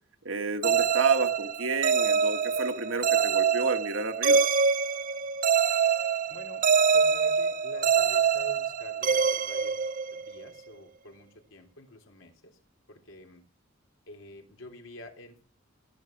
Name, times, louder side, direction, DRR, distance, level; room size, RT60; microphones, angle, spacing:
voice 1, 0.2-4.4, right 4 dB, 70° right, 7 dB, 1.6 m, -30 dB
sound 1, 0.6-10.4, right 6 dB, 40° right, 0.6 m, -25 dB
voice 2, 6.3-6.6 6.9-9.8 10.1-12.6 12.9-13.4 14.1-15.4, left 1 dB, 75° left, 4 dB, 3.5 m, -48 dB
15.5 x 10.0 x 7.3 m, 0.43 s
head